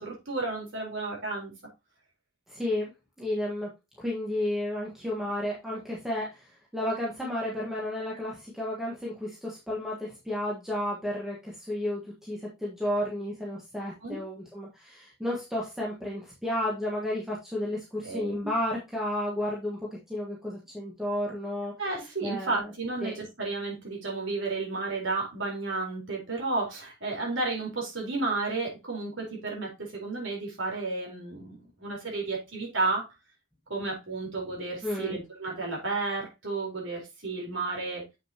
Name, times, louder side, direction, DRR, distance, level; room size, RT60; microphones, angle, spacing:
voice 1, 0.0-1.5 13.8-14.2 18.0-18.5 21.8-33.1 33.7-38.0, right 3 dB, 70° right, -2 dB, 4.3 m, -32 dB
voice 2, 2.5-2.9 3.2-3.7 4.0-21.7 22.2-22.7 23.0-23.1 34.8-35.2, left 1 dB, ahead, -5 dB, 1.6 m, -32 dB
7.8 x 6.6 x 2.9 m, 0.24 s
head